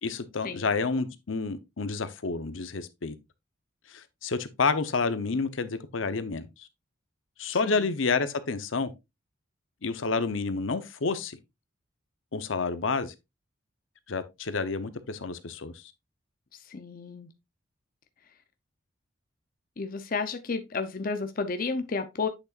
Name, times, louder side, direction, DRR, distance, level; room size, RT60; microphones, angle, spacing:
voice 1, 0.0-3.1 3.9-6.7 7.4-8.9 9.8-11.4 12.3-13.1 14.1-15.8, left 4 dB, 75° left, 0.8 m, -29 dB
voice 2, 16.5-17.3 19.8-22.3, left 4 dB, 45° left, 0.6 m, -32 dB
8.2 x 6.7 x 2.4 m
head